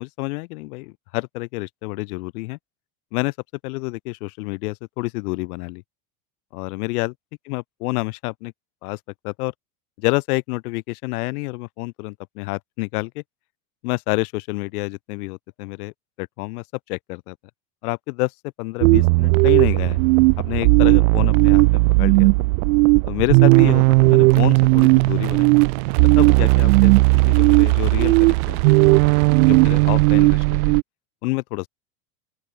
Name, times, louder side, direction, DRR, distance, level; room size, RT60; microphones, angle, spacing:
voice 1, 0.0-2.6 3.1-3.3 3.6-5.8 6.5-7.1 7.5-8.5 8.8-9.0 9.2-9.5 10.0-13.2 13.8-17.4 17.8-18.3 18.6-20.0 20.4-22.3 23.1-25.5 26.2-29.2 29.4-30.7 31.2-31.7, left 24 dB, 70° left, 3.9 m, -28 dB
sound 1, 18.8-30.8, right 27 dB, 65° right, 2.1 m, -15 dB
open air
supercardioid pair, 165°, 46 cm